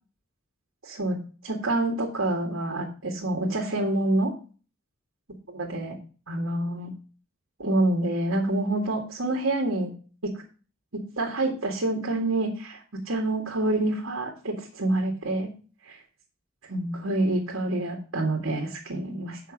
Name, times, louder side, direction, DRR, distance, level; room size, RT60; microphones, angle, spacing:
voice 1, 0.8-4.3 5.6-6.0 6.3-6.9 7.6-9.9 10.2-10.4 10.9-15.5 15.9-16.0 16.7-19.4, right 2 dB, 85° right, 0 dB, 2.1 m, -27 dB
8.0 x 5.9 x 5.1 m, 0.38 s
head